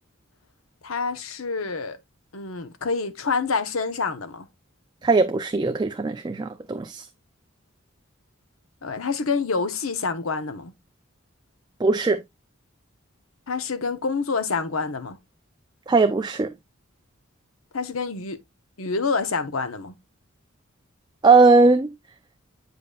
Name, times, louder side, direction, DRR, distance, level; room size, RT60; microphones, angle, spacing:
voice 1, 0.8-2.0 2.3-4.5 8.8-10.7 13.5-15.2 17.7-18.4 18.8-19.9, left 4 dB, 85° left, 0.9 m, -27 dB
voice 2, 5.0-7.0 11.8-12.2 15.9-16.5 21.2-21.9, right 3 dB, 20° right, 0.4 m, -19 dB
8.1 x 5.2 x 2.3 m
head